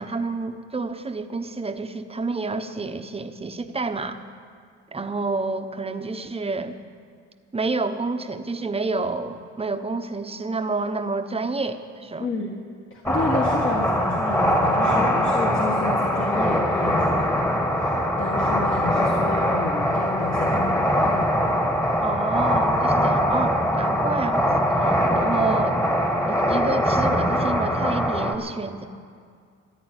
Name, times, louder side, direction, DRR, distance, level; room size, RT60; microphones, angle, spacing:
voice 1, 0.0-4.2 4.9-6.8 7.5-12.3 22.0-24.4 24.8-25.8 26.2-28.9, right 3 dB, 20° right, 8 dB, 1.0 m, -29 dB
voice 2, 12.2-12.6 12.9-21.3, left 3 dB, 40° left, -1 dB, 1.8 m, -31 dB
sound 1, 13.1-28.4, equal, 10° left, 1.6 m, -22 dB
14.5 x 9.4 x 9.5 m, 2.1 s
cardioid pair, 90°, 30 cm